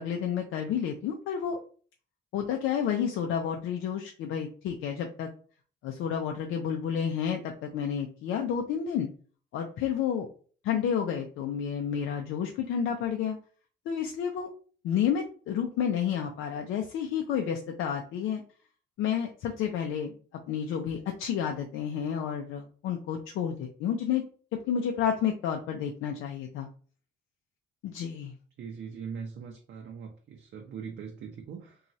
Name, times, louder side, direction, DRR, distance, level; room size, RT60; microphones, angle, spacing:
voice 1, 0.0-1.6 2.3-5.3 5.8-9.1 9.5-10.3 10.6-13.4 13.9-14.5 14.8-18.4 19.0-20.1 20.5-24.2 24.7-26.7 27.8-28.3, left 8 dB, 80° left, 3 dB, 0.4 m, -30 dB
voice 2, 28.6-31.8, right 6 dB, 65° right, 1 dB, 0.5 m, -41 dB
2.9 x 2.3 x 2.6 m, 0.42 s
cardioid pair, 90°, 20 cm